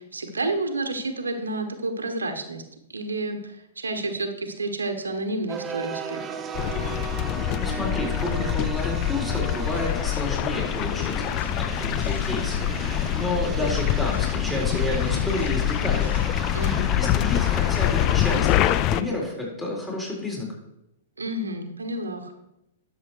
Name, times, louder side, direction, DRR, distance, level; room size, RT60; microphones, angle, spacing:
voice 1, 0.0-2.6 2.9-6.3 16.5-16.9 21.2-22.3, right 2 dB, 85° right, 6 dB, 1.3 m, -30 dB
sound 1, 5.5-18.4, right 7 dB, 25° right, 0.8 m, -36 dB
sound 2, 6.5-19.0, left 13 dB, 35° left, 0.5 m, -25 dB
voice 2, 7.4-12.7 13.1-16.2 17.0-20.5, left 2 dB, 10° left, -3 dB, 4.0 m, -30 dB
sound 3, 8.2-16.2, left 2 dB, 85° left, 0.9 m, -41 dB
11.0 x 6.9 x 4.7 m, 0.85 s
hypercardioid pair, 110°, 0 cm